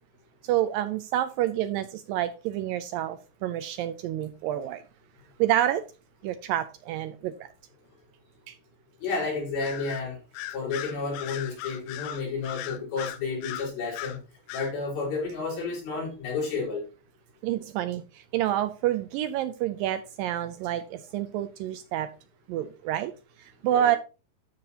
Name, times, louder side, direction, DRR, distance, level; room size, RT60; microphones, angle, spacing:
voice 1, 0.5-3.2 3.4-4.8 5.4-5.8 6.2-7.3 17.4-18.0 18.3-20.8 21.1-22.1 22.5-23.1 23.6-24.0, right 12 dB, 80° right, 2.1 m, -28 dB
voice 2, 9.0-10.2 10.5-14.2 14.5-16.8 23.7-23.9, left 4 dB, 75° left, 6.3 m, -31 dB
Bird vocalization bird call bird song, 9.6-10.0 10.3-14.2 14.5-14.7, left 12 dB, 90° left, 2.6 m, -37 dB
13.0 x 6.6 x 2.8 m
omnidirectional pair, 4.4 m